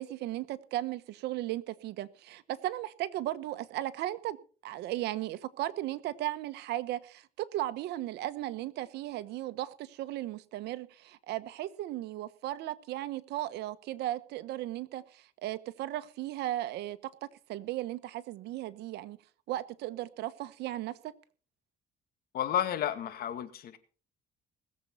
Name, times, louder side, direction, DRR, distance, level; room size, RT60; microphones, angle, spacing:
voice 1, 0.0-4.4 4.6-17.1 17.5-19.2 19.5-21.1, right 14 dB, 80° right, 1.2 m, -36 dB
voice 2, 22.3-23.8, left 10 dB, 65° left, 2.1 m, -31 dB
20.0 x 7.7 x 5.7 m
cardioid pair, 110°, 17 cm